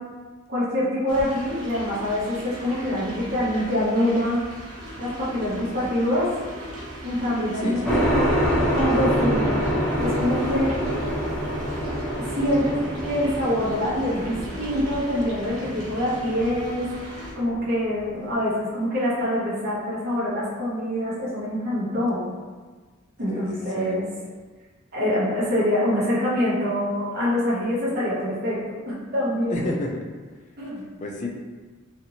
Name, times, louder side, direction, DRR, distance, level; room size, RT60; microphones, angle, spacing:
voice 1, 0.5-4.4 5.0-6.3 7.0-8.3 8.7-9.6 10.0-10.8 12.4-16.9 17.3-22.3 23.2-24.1 24.9-28.6 28.9-29.7 30.6-30.8, left 1 dB, 50° right, -9 dB, 0.9 m, -25 dB
sound 1, 1.1-17.3, right 1 dB, 80° right, 0.9 m, -39 dB
voice 2, 5.6-5.9 7.6-8.2 23.3-24.1 29.5-30.0 31.0-31.3, left 1 dB, 35° left, 0 dB, 0.4 m, -32 dB
sound 2, 7.8-18.0, equal, ahead, 0.7 m, -26 dB
2.9 x 2.5 x 2.7 m, 1.4 s
head